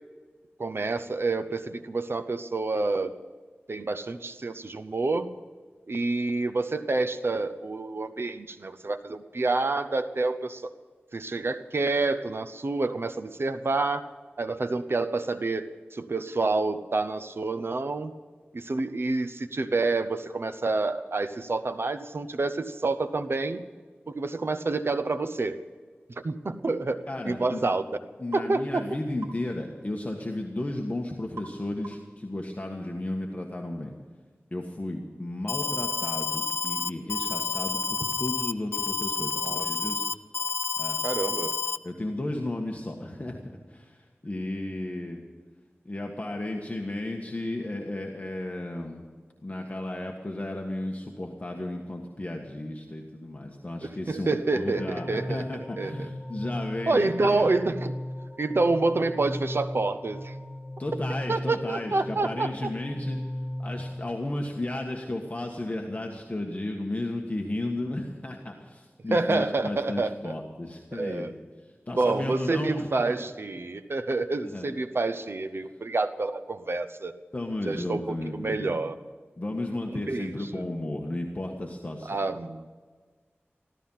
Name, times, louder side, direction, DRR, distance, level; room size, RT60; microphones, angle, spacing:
voice 1, 0.6-3.1 3.7-5.3 5.9-10.7 11.1-14.1 14.4-18.1 18.5-23.6 24.1-25.6 26.2-27.8 28.3-28.9 39.3-39.7 41.0-41.6 53.8-55.5 55.8-56.1 56.9-57.9 58.4-60.4 61.3-62.7 69.1-70.4 70.9-71.3 72.0-77.1 77.6-78.9 79.9-80.6 82.0-82.7, right 3 dB, 60° right, 10 dB, 0.8 m, -28 dB
voice 2, 27.1-27.7 28.2-33.9 34.5-40.1 40.8-41.0 41.8-43.4 43.7-45.2 45.8-49.0 49.4-57.5 60.8-63.2 63.6-71.3 71.6-73.3 74.4-74.7 77.3-78.8 79.4-82.2, left 1 dB, 35° left, 1 dB, 1.6 m, -34 dB
sound 1, 28.3-28.5 29.2-29.4 31.4-31.6 31.8-32.2, right 4 dB, 85° right, 2.5 m, -44 dB
Alarm, 35.5-41.8, left 5 dB, 65° left, 0.6 m, -29 dB
sound 2, 54.7-64.0, left 1 dB, 10° left, 2.3 m, -37 dB
15.0 x 13.5 x 5.7 m, 1.5 s
wide cardioid pair, 70°, 4 cm